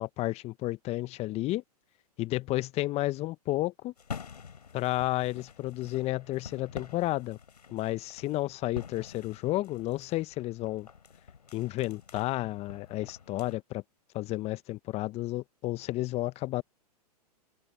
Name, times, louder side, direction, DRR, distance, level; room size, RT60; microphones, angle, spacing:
voice 1, 0.0-1.6 2.2-3.9 4.7-7.4 7.7-10.9 11.5-13.8 14.1-16.6, left 17 dB, 30° left, 1.0 m, -32 dB
sound 1, 4.0-13.6, left 6 dB, 80° left, 4.3 m, -47 dB
open air
hypercardioid pair, 110°, 20 cm